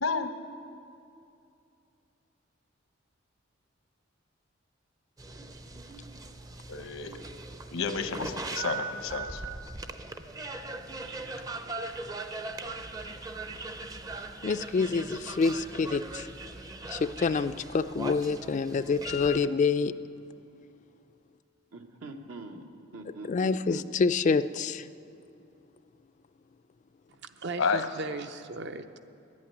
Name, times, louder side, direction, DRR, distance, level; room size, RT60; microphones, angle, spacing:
voice 1, 0.0-0.3 6.7-7.1 7.7-9.4 27.6-27.9, left 5 dB, 80° left, 8 dB, 0.9 m, -30 dB
sound 1, 5.2-19.5, right 3 dB, 20° right, 0.5 m, -40 dB
voice 2, 14.4-16.3 16.9-19.9 23.3-24.9, left 4 dB, 35° left, 12 dB, 0.3 m, -27 dB
voice 3, 21.7-23.8, right 2 dB, 80° right, 4 dB, 1.2 m, -44 dB
voice 4, 27.1-29.0, right 3 dB, 60° right, 9 dB, 0.6 m, -37 dB
11.0 x 8.6 x 9.8 m, 2.6 s
head